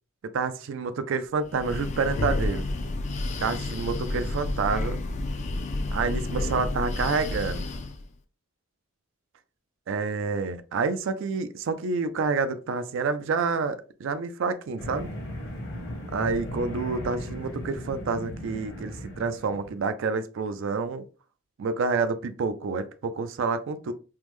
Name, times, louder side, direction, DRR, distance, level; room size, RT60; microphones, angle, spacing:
voice 1, 0.3-2.7 3.4-5.0 5.9-7.7 9.9-15.1 16.1-21.0 21.6-23.9, right 4 dB, 60° right, 0.4 m, -28 dB
Breathing, 1.4-8.0, left 2 dB, 35° left, 0.3 m, -30 dB
sound 1, 14.8-19.8, left 1 dB, 55° left, 0.9 m, -37 dB
3.4 x 2.1 x 3.0 m
head